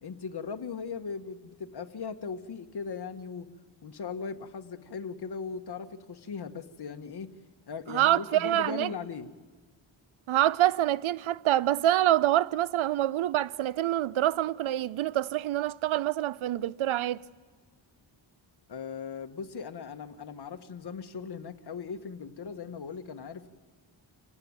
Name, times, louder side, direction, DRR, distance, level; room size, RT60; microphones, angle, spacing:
voice 1, 0.0-3.5 3.8-7.3 7.7-9.3 18.7-23.5, left 5 dB, 55° left, 1.4 m, -38 dB
voice 2, 7.9-8.9 10.3-17.3, right 13 dB, 85° right, 0.6 m, -26 dB
27.0 x 17.5 x 9.6 m
wide cardioid pair, 100°, 47 cm